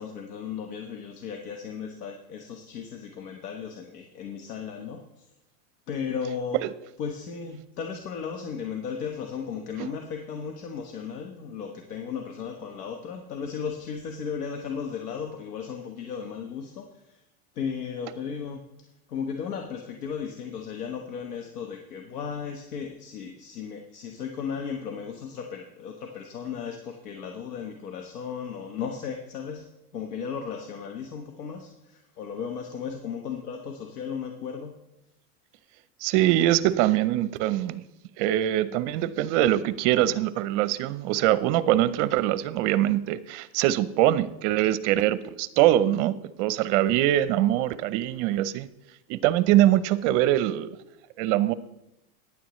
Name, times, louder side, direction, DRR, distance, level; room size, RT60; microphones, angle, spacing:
voice 1, 0.0-5.3 5.9-6.6 7.0-17.2 17.5-18.6 19.1-29.7 29.9-34.8, left 6 dB, 90° left, 4 dB, 1.3 m, -35 dB
voice 2, 36.0-37.8 38.2-48.7 49.1-50.7 51.2-51.5, right 13 dB, 55° right, 16 dB, 0.7 m, -23 dB
14.5 x 10.0 x 3.1 m, 0.88 s
supercardioid pair, 125°, 44 cm